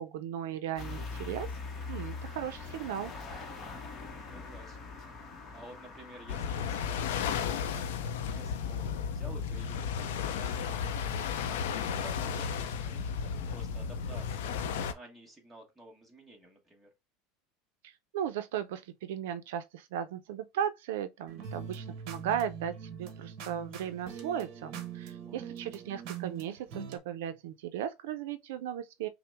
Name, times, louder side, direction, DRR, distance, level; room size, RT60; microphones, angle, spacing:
voice 1, 0.0-1.5 1.9-3.1 17.8-29.1, right 9 dB, 80° right, 0.4 m, -36 dB
sound 1, 0.8-7.4, left 4 dB, 25° left, 0.8 m, -43 dB
voice 2, 4.2-4.9 5.5-7.9 8.2-11.6 11.9-14.6 14.9-16.9 25.2-25.5, right 1 dB, 5° right, 1.2 m, -52 dB
sound 2, 6.3-14.9, left 7 dB, 85° left, 0.5 m, -34 dB
sound 3, 21.3-27.0, right 7 dB, 45° right, 1.0 m, -42 dB
5.8 x 2.0 x 3.3 m
supercardioid pair, 165°, 0 cm